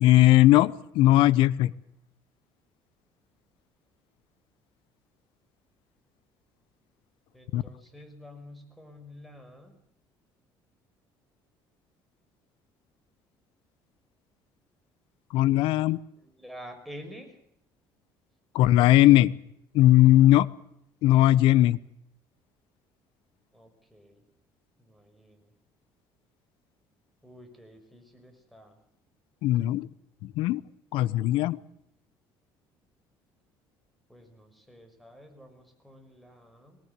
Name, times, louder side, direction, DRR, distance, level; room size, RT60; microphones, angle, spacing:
voice 1, 0.0-1.7 7.5-7.6 15.3-16.0 18.5-19.3 19.7-20.5 21.0-21.8 29.4-29.9 30.2-30.6 30.9-31.6, left 15 dB, 80° left, 18 dB, 0.9 m, -19 dB
voice 2, 7.3-9.7 16.2-17.4 23.5-24.2 24.8-25.5 27.2-28.8 34.1-36.8, equal, ahead, 6 dB, 6.0 m, -49 dB
21.5 x 18.5 x 8.3 m, 0.74 s
cardioid pair, 120°, 9 cm